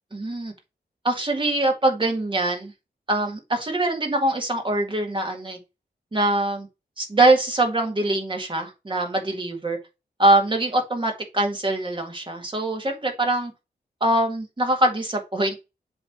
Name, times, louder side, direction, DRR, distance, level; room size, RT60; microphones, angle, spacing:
voice 1, 0.1-0.5 1.0-2.7 3.1-5.6 6.1-6.7 7.0-9.8 10.2-13.5 14.0-15.6, right 2 dB, 30° right, 2 dB, 1.9 m, -23 dB
7.6 x 3.1 x 5.7 m, 0.27 s
wide cardioid pair, 145°, 18 cm